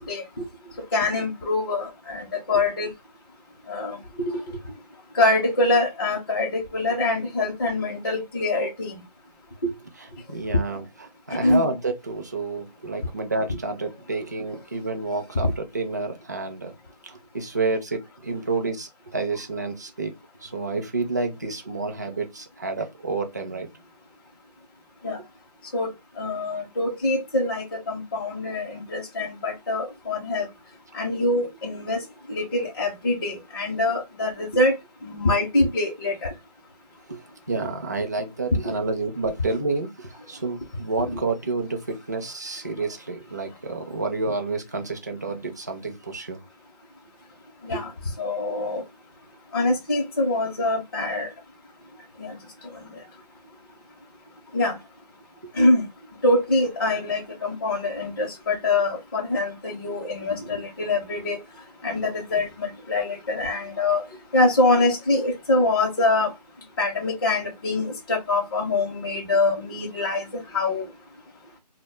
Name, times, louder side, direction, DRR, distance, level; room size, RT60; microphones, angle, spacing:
voice 1, 0.1-0.4 0.9-2.9 3.7-4.4 5.1-9.0 9.6-9.7 10.5-10.6 11.4-11.7 15.4-15.5 25.0-25.2 25.7-30.5 30.9-32.0 32.3-34.8 35.0-36.3 47.6-47.9 48.2-48.8 49.5-51.3 52.2-52.3 54.5-54.8 55.6-55.8 56.2-61.4 61.8-64.1 64.3-66.3 66.8-70.3 70.5-70.8, left 2 dB, 35° left, 0.6 m, -24 dB
voice 2, 10.0-16.7 17.0-20.1 20.4-23.7 37.1-46.4, right 3 dB, 25° right, 0.3 m, -29 dB
2.0 x 2.0 x 3.1 m
figure-of-eight pair, 165°, 21 cm